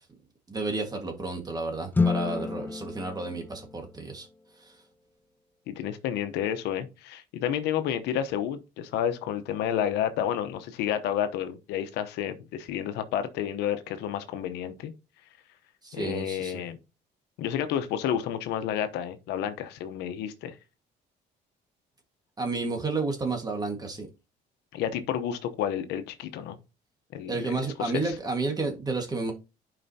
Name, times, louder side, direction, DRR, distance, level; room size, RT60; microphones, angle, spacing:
voice 1, 0.5-4.3 4.6-4.7 15.8-16.6 22.4-24.1 27.3-29.3, right 3 dB, 25° right, 1.6 m, -31 dB
sound 1, 1.9-4.3, left 4 dB, 10° left, 0.4 m, -29 dB
voice 2, 5.7-14.9 15.9-16.8 17.4-20.5 24.7-26.6 27.1-28.1, left 9 dB, 85° left, 0.9 m, -30 dB
11.0 x 5.0 x 2.8 m
cardioid pair, 110°, 17 cm